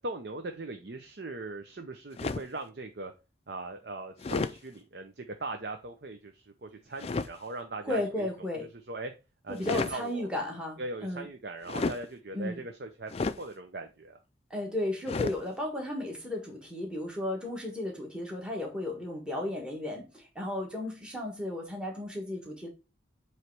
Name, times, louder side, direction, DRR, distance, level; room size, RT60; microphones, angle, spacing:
voice 1, 0.0-3.1 3.5-8.3 8.6-9.1 9.4-10.3 10.8-13.1 13.4-14.2, right 2 dB, 55° right, 0.7 m, -40 dB
sound 1, 2.2-2.6 4.2-4.6 7.0-7.3 9.5-10.0 11.7-12.1 13.1-13.4 15.1-15.4, left 3 dB, 30° left, 0.3 m, -32 dB
voice 2, 7.8-8.7 9.5-11.2 12.3-12.6 14.5-22.7, left 1 dB, 5° right, 1.4 m, -34 dB
7.9 x 3.2 x 4.6 m
head